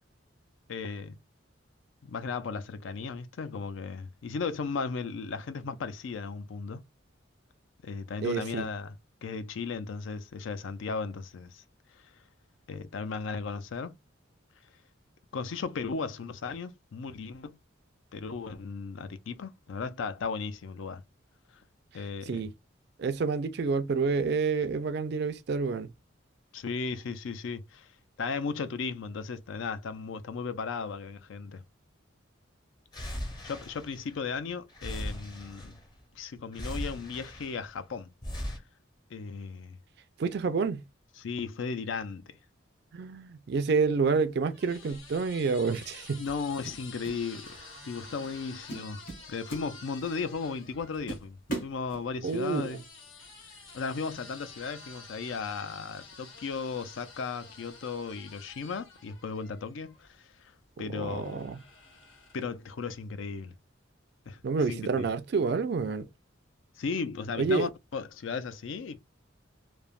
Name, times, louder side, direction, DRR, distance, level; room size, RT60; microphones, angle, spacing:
voice 1, 0.7-1.2 2.0-6.8 7.8-8.9 9.2-11.6 11.9-12.1 12.7-14.0 15.3-17.6 18.1-21.0 21.9-22.5 26.5-27.9 28.2-31.6 33.1-35.8 36.1-38.1 39.1-39.8 41.2-42.3 46.2-52.8 53.7-60.5 60.8-61.4 62.3-63.5 64.3-64.4 64.7-65.1 66.8-69.0, left 5 dB, 75° left, 0.4 m, -36 dB
voice 2, 8.2-8.6 22.3-22.5 23.0-25.9 40.2-40.8 42.9-46.2 52.2-52.6 60.9-61.6 64.4-66.1 67.4-67.7, right 4 dB, 55° right, 0.4 m, -28 dB
sound 1, 32.9-34.4 34.7-36.0 36.5-37.8 38.2-38.6, equal, 20° left, 0.6 m, -38 dB
sound 2, 43.9-51.3 52.2-60.1 61.0-62.6, left 3 dB, 90° left, 1.2 m, -50 dB
sound 3, 46.3-47.2 47.5-47.8 48.2-48.4 48.7-50.2 50.6-50.7 51.1-52.4, right 3 dB, 45° left, 1.0 m, -40 dB
3.2 x 2.0 x 2.4 m
head